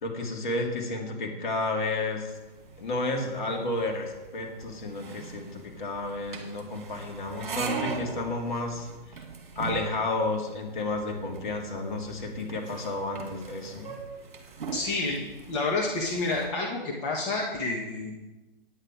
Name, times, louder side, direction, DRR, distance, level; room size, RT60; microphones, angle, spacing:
voice 1, 0.0-2.3 2.8-8.9 9.6-13.9, left 2 dB, 55° left, 2 dB, 2.2 m, -31 dB
sound 1, 2.3-16.5, right 5 dB, 55° right, 2.1 m, -40 dB
voice 2, 14.7-18.1, left 3 dB, 30° left, -1 dB, 1.4 m, -29 dB
9.7 x 8.9 x 5.0 m, 1.1 s
figure-of-eight pair, 125°, 30 cm